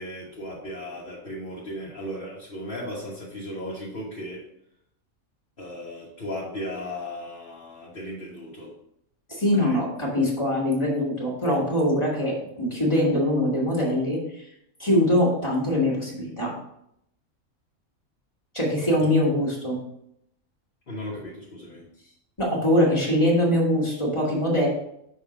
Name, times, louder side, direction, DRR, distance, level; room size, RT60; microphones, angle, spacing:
voice 1, 0.0-4.4 5.6-8.7 9.6-9.8 19.0-19.1 20.9-21.8, left 1 dB, 40° left, -6 dB, 1.4 m, -36 dB
voice 2, 9.3-14.5 14.8-16.5 18.5-19.8 22.4-24.7, left 1 dB, 20° left, -4 dB, 1.7 m, -23 dB
6.1 x 3.7 x 4.9 m, 0.75 s
omnidirectional pair, 1.4 m